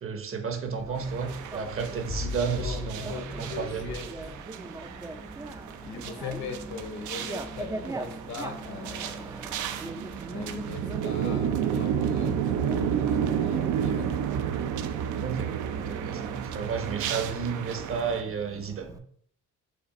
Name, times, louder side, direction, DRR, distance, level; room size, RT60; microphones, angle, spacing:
voice 1, 0.0-4.0 15.2-18.9, right 6 dB, 45° right, 6 dB, 0.8 m, -32 dB
Bicycle, 0.8-19.0, right 2 dB, 10° right, 0.3 m, -41 dB
sound 1, 1.0-18.2, right 8 dB, 75° right, 0.5 m, -32 dB
sound 2, 1.7-4.5, left 3 dB, 45° left, 0.6 m, -38 dB
voice 2, 2.6-4.1 5.8-9.3 10.3-14.4, left 5 dB, 65° left, 5 dB, 1.0 m, -40 dB
5.0 x 2.5 x 4.1 m, 0.64 s
cardioid pair, 90°, 30 cm